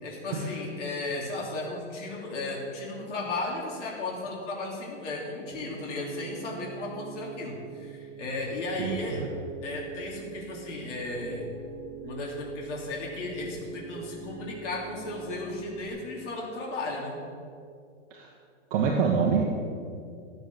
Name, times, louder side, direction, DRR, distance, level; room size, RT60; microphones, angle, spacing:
voice 1, 0.0-9.2 9.6-11.5 12.0-17.2, left 2 dB, 70° left, -3 dB, 3.1 m, -35 dB
Piano, 5.5-15.9, right 7 dB, 90° right, 1.6 m, -43 dB
voice 2, 8.8-9.3 18.1-18.3 18.7-19.4, right 5 dB, 45° right, -1 dB, 1.7 m, -26 dB
13.5 x 7.9 x 7.0 m, 2.4 s
hypercardioid pair, 135°, 37 cm